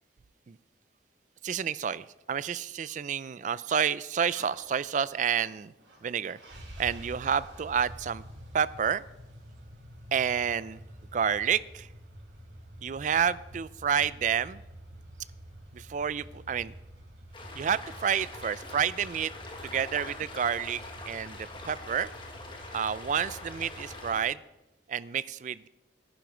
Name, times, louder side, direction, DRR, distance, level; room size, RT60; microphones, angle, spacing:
voice 1, 1.4-5.7 6.0-6.4 6.8-8.2 8.5-9.0 10.1-10.8 11.1-11.9 12.8-14.6 15.7-16.7 17.6-19.3 19.6-22.1 22.7-24.4 24.9-25.7, right 7 dB, 45° right, 18 dB, 0.3 m, -29 dB
sound 1, 4.3-24.2, equal, 80° right, 4.4 m, -48 dB
sound 2, 17.3-24.2, left 2 dB, 30° left, 1.6 m, -44 dB
11.0 x 10.5 x 5.0 m, 0.97 s
head